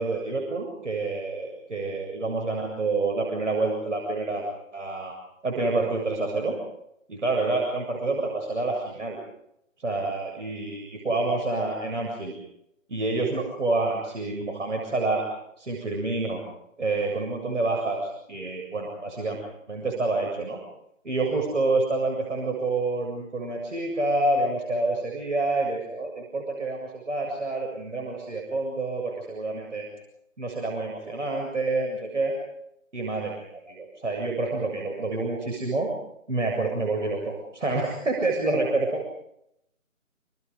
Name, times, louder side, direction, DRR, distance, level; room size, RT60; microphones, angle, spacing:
voice 1, 0.0-4.5 4.7-5.1 5.4-6.6 7.1-9.2 9.8-12.4 12.9-15.2 15.6-16.4 16.8-19.4 19.7-20.6 21.0-29.9 30.4-32.3 32.9-35.9 36.3-39.0, right 2 dB, 65° right, 1 dB, 7.5 m, -28 dB
29.0 x 26.5 x 5.2 m, 0.80 s
figure-of-eight pair, 160°, 40 cm